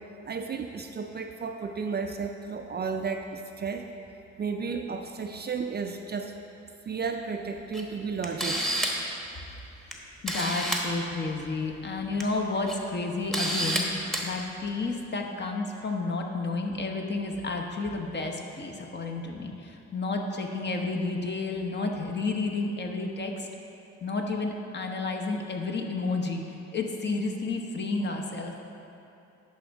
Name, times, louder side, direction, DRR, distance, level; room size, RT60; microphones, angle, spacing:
voice 1, 0.3-3.8 4.4-6.4 6.8-8.6, right 5 dB, 35° right, 4 dB, 0.4 m, -33 dB
Camera, 7.7-7.8 8.2-9.1 9.9-10.0 10.3-10.8 12.0-12.2 12.7-12.8 13.3-13.8 14.1-14.2, right 1 dB, ahead, 1.0 m, -28 dB
voice 2, 10.2-13.9 14.2-23.5 24.0-26.4 26.7-28.6, left 3 dB, 35° left, 2 dB, 0.9 m, -31 dB
10.5 x 5.3 x 3.5 m, 2.9 s
cardioid pair, 90°, 30 cm